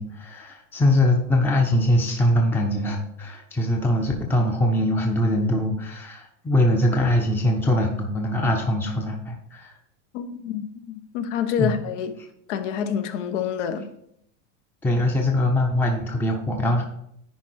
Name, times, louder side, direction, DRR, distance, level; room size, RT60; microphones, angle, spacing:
voice 1, 0.0-9.8 11.6-11.8 14.8-16.8, left 1 dB, 5° left, 0.7 m, -22 dB
voice 2, 10.1-12.2 12.5-13.9, left 8 dB, 70° left, 1.2 m, -27 dB
10.0 x 4.5 x 4.6 m
supercardioid pair, 135°, 38 cm